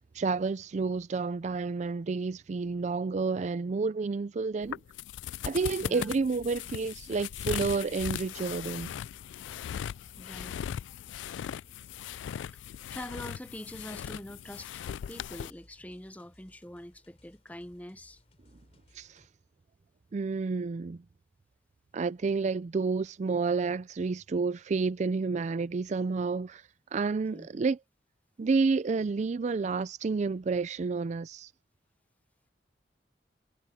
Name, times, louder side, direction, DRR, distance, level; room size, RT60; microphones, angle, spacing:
voice 1, 0.1-4.8 5.4-8.9 19.0-19.2 20.1-21.0 21.9-26.6 26.9-27.8 28.4-31.5, right 4 dB, 40° right, 0.4 m, -30 dB
sound 1, 4.6-15.5, left 9 dB, 85° left, 0.3 m, -39 dB
sound 2, 5.7-19.3, left 1 dB, 35° left, 3.2 m, -62 dB
voice 2, 5.8-6.2 10.2-10.6 12.9-18.2 27.3-27.5, left 1 dB, 10° left, 0.8 m, -44 dB
head